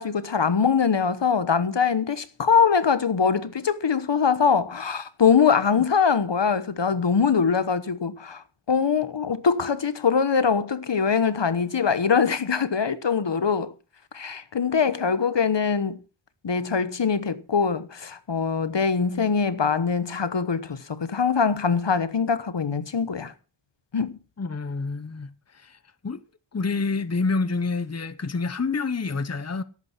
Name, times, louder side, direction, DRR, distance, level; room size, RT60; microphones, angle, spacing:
voice 1, 0.0-13.7 14.1-16.0 16.4-23.3 23.9-24.1, left 6 dB, 65° left, 1.2 m, -23 dB
voice 2, 24.4-25.8 26.0-26.2 26.5-29.6, left 4 dB, 35° left, 0.9 m, -28 dB
17.0 x 8.4 x 5.9 m
wide cardioid pair, 75°, 46 cm